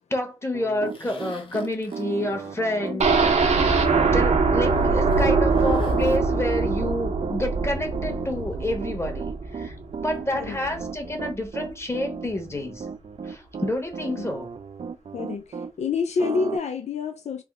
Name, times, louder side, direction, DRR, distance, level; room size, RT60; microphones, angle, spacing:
voice 1, 0.1-3.2 3.6-9.8 10.0-12.8 13.2-14.5, left 1 dB, 25° left, 1.1 m, -29 dB
Piano, 0.5-15.7 16.2-16.6, right 6 dB, 60° right, 0.4 m, -35 dB
Zipper (clothing), 0.9-3.4 3.7-4.0 4.6-6.2, left 2 dB, 50° left, 1.0 m, -39 dB
voice 2, 2.9-3.2 10.3-10.6 14.0-14.3 15.1-17.4, left 5 dB, 80° left, 0.4 m, -28 dB
sound 1, 3.0-10.9 11.2-11.3 11.7-11.8, right 4 dB, 80° right, 0.7 m, -23 dB
3.5 x 2.1 x 3.5 m
cardioid pair, 55°, 11 cm